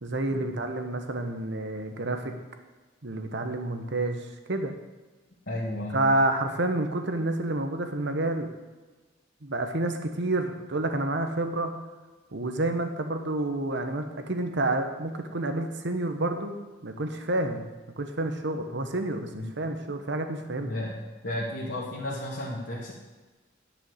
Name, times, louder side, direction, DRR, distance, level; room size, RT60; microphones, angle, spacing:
voice 1, 0.0-2.3 3.0-4.7 5.9-8.5 9.4-11.7 12.3-16.6 16.8-17.6 18.0-20.7, right 2 dB, 65° right, 6 dB, 1.1 m, -29 dB
voice 2, 5.5-6.0 19.4-19.5 20.6-21.0 21.2-22.9, left 1 dB, 65° left, -5 dB, 2.0 m, -33 dB
10.0 x 5.6 x 7.9 m, 1.3 s
head